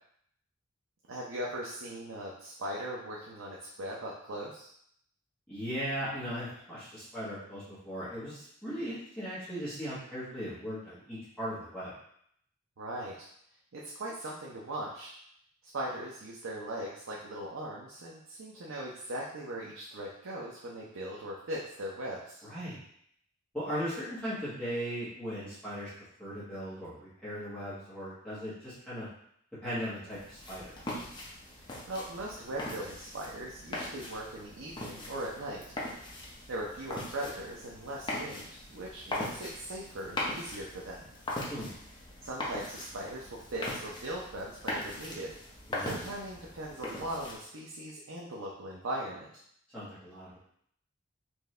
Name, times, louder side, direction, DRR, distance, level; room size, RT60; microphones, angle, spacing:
voice 1, 1.1-4.7 12.8-13.3 13.7-15.1 15.7-22.4 31.6-35.6 36.5-41.0 42.2-45.3 45.8-49.3, right 1 dB, 80° right, -4 dB, 0.7 m, -39 dB
voice 2, 5.5-11.9 22.4-22.8 23.5-25.9 26.2-29.1 29.6-30.8 41.5-41.7 45.7-46.0 49.7-50.4, equal, 5° left, -13 dB, 1.2 m, -38 dB
sound 1, 30.1-47.4, left 1 dB, 20° left, 0.7 m, -40 dB
4.5 x 2.7 x 3.2 m, 0.68 s
head